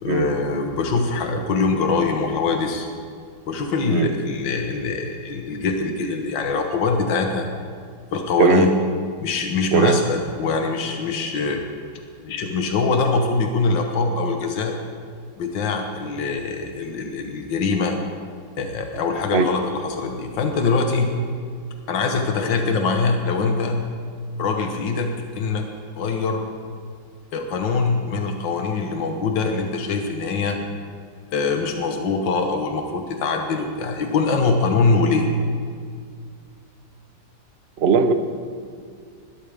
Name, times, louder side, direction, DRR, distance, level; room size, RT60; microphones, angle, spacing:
voice 1, 0.0-2.9 3.5-7.5 8.1-8.7 9.2-11.6 12.2-14.8 15.4-18.0 18.6-21.1 21.9-23.8 24.4-25.7 26.0-26.4 27.3-30.6 31.3-35.3, left 4 dB, 75° left, 4 dB, 1.9 m, -23 dB
voice 2, 8.4-8.7 9.7-10.0 19.3-19.5 37.8-38.1, right 6 dB, 55° right, 8 dB, 0.7 m, -18 dB
20.0 x 13.0 x 3.5 m, 2.1 s
omnidirectional pair, 2.0 m